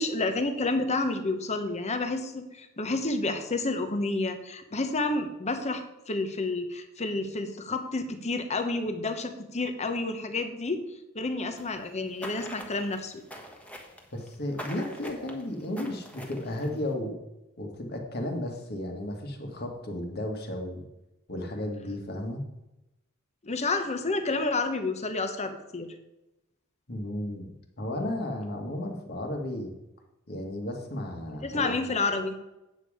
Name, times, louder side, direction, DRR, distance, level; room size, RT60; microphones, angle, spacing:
voice 1, 0.0-10.8 11.1-13.1 23.4-25.9 31.4-32.3, left 3 dB, 30° left, 8 dB, 1.0 m, -30 dB
sound 1, 11.6-16.9, equal, 5° left, 1.3 m, -44 dB
voice 2, 14.1-17.2 17.6-20.9 21.3-22.4 26.9-29.7 30.3-31.9, left 1 dB, 50° left, 3 dB, 1.8 m, -34 dB
9.0 x 7.4 x 5.0 m, 0.93 s
head